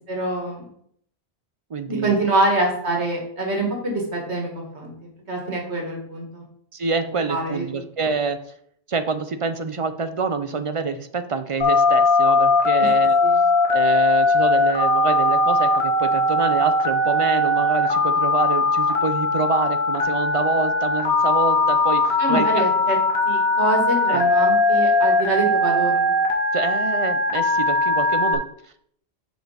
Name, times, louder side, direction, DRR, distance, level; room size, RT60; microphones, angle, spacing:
voice 1, 0.1-0.7 1.9-4.9 5.3-6.4 7.3-7.7 12.8-12.9 13.2-13.4 22.2-23.0 23.3-26.1, right 2 dB, 85° right, 0 dB, 2.1 m, -25 dB
voice 2, 1.7-2.1 6.7-8.4 8.9-13.2 13.7-22.5 24.1-24.2 26.5-28.4, right 4 dB, 50° right, 10 dB, 0.4 m, -26 dB
Telephone, 11.6-28.4, left 2 dB, 65° left, 1.5 m, -19 dB
6.2 x 5.0 x 5.0 m, 0.66 s
omnidirectional pair, 1.1 m